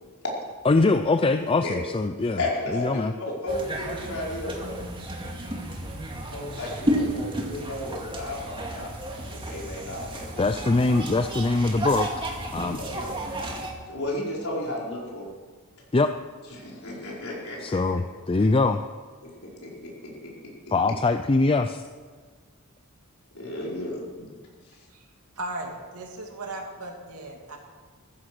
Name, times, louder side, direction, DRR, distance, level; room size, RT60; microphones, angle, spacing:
voice 1, 0.6-2.4 2.7-3.1 10.4-12.1 12.5-12.8 15.9-16.1 17.6-18.8 20.7-21.8, left 3 dB, 25° left, 8 dB, 0.5 m, -22 dB
voice 2, 2.4-2.9 3.2-4.8 6.3-8.9 9.3-10.3 12.6-12.7 12.9-13.1 13.9-15.3 16.5-18.0 19.4-20.3 23.3-24.0, left 1 dB, 70° left, -3 dB, 5.0 m, -33 dB
sound 1, 3.5-13.7, right 1 dB, 25° right, 2.2 m, -32 dB
voice 3, 25.4-27.6, right 2 dB, 90° right, 2 dB, 2.8 m, -36 dB
15.0 x 14.5 x 6.1 m, 1.5 s
head